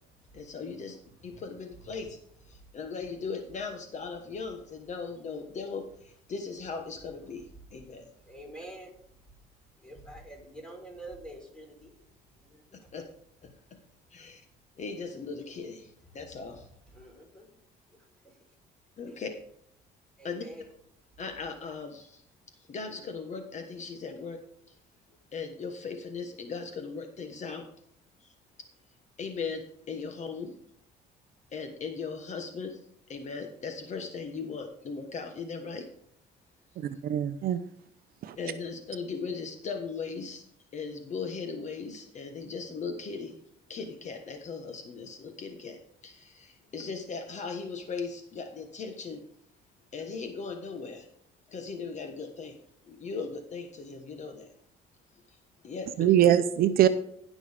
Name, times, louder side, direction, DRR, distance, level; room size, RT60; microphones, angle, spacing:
voice 1, 0.3-1.0 1.2-2.2 2.4-8.1 12.9-13.0 13.4-13.5 14.1-14.4 14.8-16.7 19.0-19.3 20.2-20.5 21.2-22.2 22.7-24.4 24.6-24.8 25.3-27.6 28.2-28.3 29.2-30.5 31.5-32.8 33.1-35.8 38.4-40.5 40.7-43.3 43.7-49.2 49.9-51.1 51.5-52.6 52.8-54.5 55.3-55.4 55.6-56.2, left 5 dB, 45° left, 1.3 m, -38 dB
voice 2, 8.3-8.9 9.8-12.0 12.5-12.6 16.9-17.5 19.1-19.2 20.2-20.7, right 1 dB, 5° left, 4.3 m, -46 dB
voice 3, 36.8-37.6 38.2-38.3 56.0-56.9, right 11 dB, 65° right, 0.7 m, -23 dB
16.5 x 6.2 x 3.5 m
cardioid pair, 110°, 17 cm